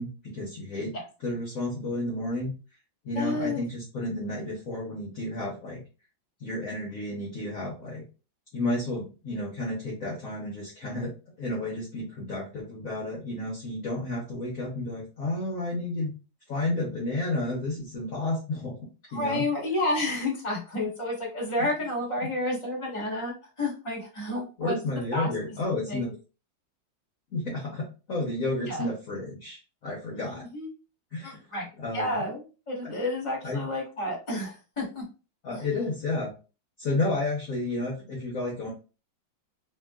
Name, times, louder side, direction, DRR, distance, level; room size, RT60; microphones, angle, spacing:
voice 1, 0.0-0.9 1.2-2.5 3.0-5.8 6.4-8.0 8.5-16.1 16.5-18.8 19.1-19.4 22.2-22.3 24.6-26.1 27.3-30.4 31.1-31.4 31.8-32.2 32.8-32.9 33.4-33.7 35.4-36.3 36.8-38.7, left 2 dB, 55° left, -4 dB, 1.0 m, -31 dB
voice 2, 3.1-3.7 19.1-24.7 25.1-25.3 25.9-26.1 28.7-28.9 30.2-30.7 31.2-31.7 31.9-35.0 35.5-35.6, left 2 dB, 20° left, -3 dB, 1.1 m, -30 dB
3.6 x 2.4 x 2.2 m, 0.33 s
omnidirectional pair, 2.1 m